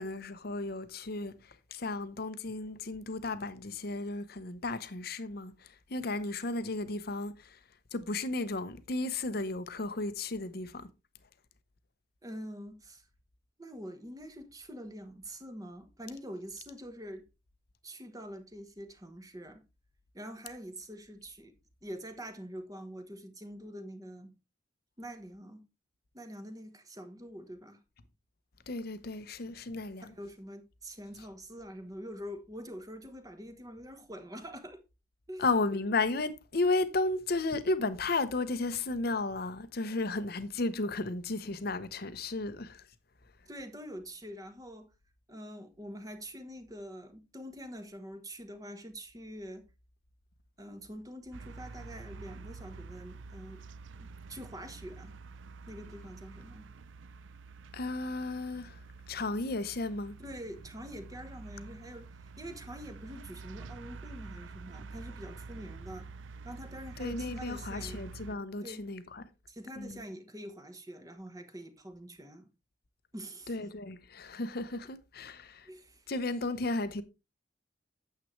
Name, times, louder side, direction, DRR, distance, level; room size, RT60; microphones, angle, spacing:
voice 1, 0.0-7.6 7.9-10.9 28.7-30.1 35.4-42.9 57.7-58.8 59.1-60.2 67.0-69.2 69.8-70.0 73.5-75.7 76.1-77.0, left 3 dB, 55° left, 0.8 m, -34 dB
voice 2, 12.2-13.1 13.6-17.3 17.8-19.6 20.1-21.5 21.8-24.3 25.0-25.6 26.1-27.8 30.0-34.8 35.3-35.5 43.5-44.9 45.3-49.7 50.6-53.6 54.0-55.1 55.7-56.7 60.2-66.1 66.4-68.1 68.6-68.9 69.5-72.5 73.1-73.6 75.7-76.1, equal, 20° right, 1.2 m, -45 dB
sound 1, 51.3-68.4, right 4 dB, 90° right, 0.5 m, -47 dB
9.2 x 7.6 x 3.2 m
head